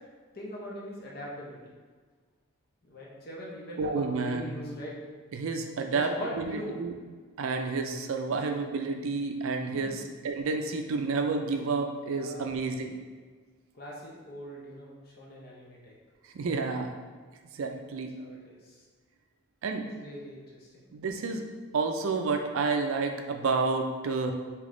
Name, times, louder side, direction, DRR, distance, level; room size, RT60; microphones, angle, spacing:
voice 1, 0.3-1.6 2.8-5.0 5.9-6.8 9.6-10.1 12.1-12.6 13.8-16.0 18.2-18.8 19.8-20.8, equal, 45° left, -4 dB, 0.7 m, -41 dB
voice 2, 3.8-4.6 5.3-6.9 7.4-13.0 16.3-17.0 17.5-18.1 19.6-19.9 20.9-21.4 21.7-24.3, right 4 dB, 70° right, 5 dB, 0.4 m, -30 dB
3.4 x 2.9 x 3.7 m, 1.5 s
head